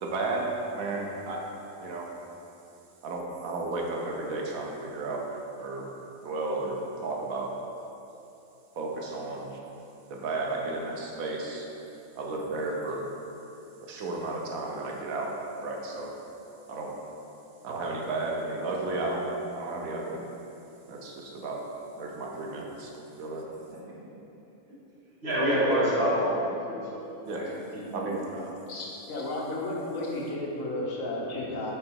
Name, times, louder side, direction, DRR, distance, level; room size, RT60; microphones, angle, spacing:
voice 1, 0.0-2.1 3.0-5.2 5.6-5.9 6.2-7.5 8.8-9.6 10.1-11.6 12.2-13.1 13.8-15.3 15.6-16.1 16.7-16.9 17.6-19.3 19.5-20.2 20.9-21.6 22.0-22.9 23.2-23.4 27.2-27.4 27.9-28.2, right 2 dB, 75° right, -1 dB, 1.1 m, -33 dB
voice 2, 25.2-27.0 27.3-27.5 28.0-28.4, equal, 50° right, -8 dB, 1.6 m, -27 dB
voice 3, 28.7-31.7, left 1 dB, 70° left, -3 dB, 1.3 m, -33 dB
5.7 x 3.9 x 4.5 m, 2.9 s
omnidirectional pair, 1.5 m